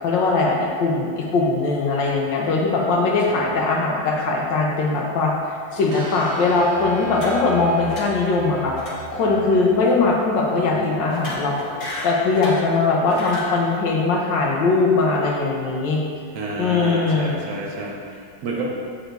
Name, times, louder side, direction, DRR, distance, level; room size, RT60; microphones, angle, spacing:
voice 1, 0.0-5.3 5.7-8.7 9.1-11.5 12.0-16.0 16.5-17.3, left 3 dB, 70° left, -1 dB, 1.4 m, -20 dB
voice 2, 3.3-3.6 10.7-10.9 16.3-18.7, right 3 dB, 60° right, -2 dB, 1.2 m, -30 dB
sound 1, 5.9-12.0, right 3 dB, 80° right, 0.6 m, -37 dB
sound 2, 7.1-7.6 7.9-8.3 8.8-9.0 9.3-9.5 11.1-12.7 13.1-13.5, left 2 dB, 45° left, 1.4 m, -32 dB
7.8 x 2.7 x 4.5 m, 2.2 s
omnidirectional pair, 2.1 m